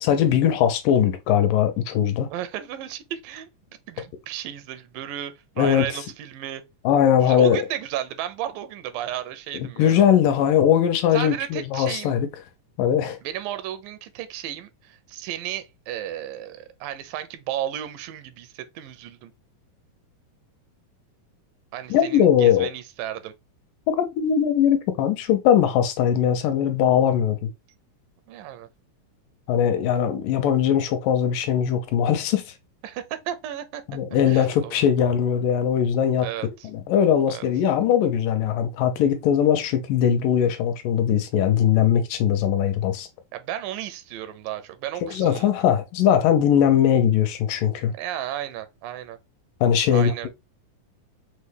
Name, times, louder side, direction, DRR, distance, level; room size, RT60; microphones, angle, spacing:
voice 1, 0.0-2.3 5.6-5.9 6.9-7.6 9.5-12.3 12.8-13.2 21.9-22.7 23.9-27.5 29.5-32.4 33.9-36.3 36.6-43.1 45.0-47.9 49.6-50.1, left 9 dB, 80° left, 2.3 m, -20 dB
voice 2, 2.3-3.5 3.9-6.6 7.2-10.1 11.1-12.1 13.2-19.3 21.7-23.3 28.3-28.7 32.8-33.8 34.1-34.8 36.2-36.7 37.3-37.5 43.3-45.5 48.0-49.2 49.9-50.3, right 11 dB, 85° right, 2.3 m, -33 dB
5.9 x 2.2 x 3.3 m
omnidirectional pair, 3.9 m